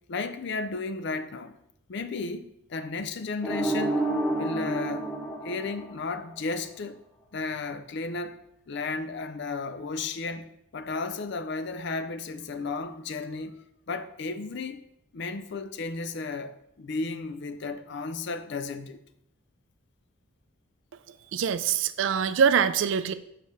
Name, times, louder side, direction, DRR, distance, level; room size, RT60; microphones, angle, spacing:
voice 1, 0.1-1.6 1.9-4.0 4.4-5.1 5.4-7.0 7.3-10.5 10.7-14.9 15.1-19.0, left 3 dB, 55° left, 0.4 m, -34 dB
sound 1, 3.4-6.4, right 2 dB, 5° left, 0.5 m, -29 dB
voice 2, 21.3-23.1, right 7 dB, 60° right, 0.3 m, -24 dB
6.6 x 3.3 x 5.3 m
head